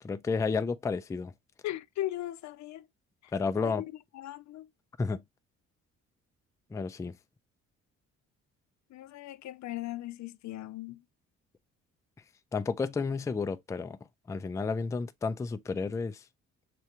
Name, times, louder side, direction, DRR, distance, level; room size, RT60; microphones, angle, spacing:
voice 1, 0.0-1.3 3.3-3.8 5.0-5.2 6.7-7.2 12.5-14.0 14.3-16.2, left 4 dB, 10° left, 0.3 m, -31 dB
voice 2, 1.6-2.9 3.2-3.9 4.1-4.7 8.9-11.0, left 14 dB, 65° left, 0.5 m, -38 dB
6.7 x 2.4 x 2.9 m
cardioid pair, 90°, 30 cm